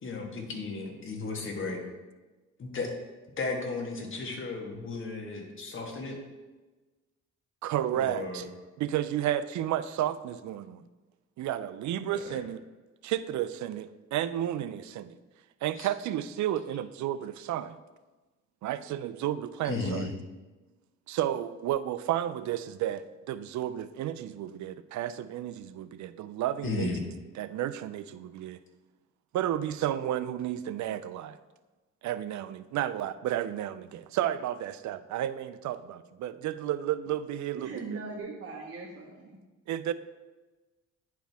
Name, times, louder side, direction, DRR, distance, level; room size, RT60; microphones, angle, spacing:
voice 1, 0.0-1.8 2.6-2.9 3.4-6.2 7.9-8.4 12.1-12.4 15.8-15.9 19.6-20.1 26.6-27.0, left 3 dB, 40° left, 1 dB, 1.6 m, -34 dB
voice 2, 7.6-8.5 8.8-10.8 11.4-12.6 13.0-15.1 15.6-17.8 18.6-20.1 21.1-26.9 27.4-28.6 29.3-31.4 32.0-38.0 39.7-39.9, right 11 dB, 70° right, 14 dB, 0.5 m, -32 dB
voice 3, 37.6-39.4, right 3 dB, 45° right, -6 dB, 1.5 m, -40 dB
10.0 x 4.6 x 3.5 m, 1.2 s
cardioid pair, 90°, 30 cm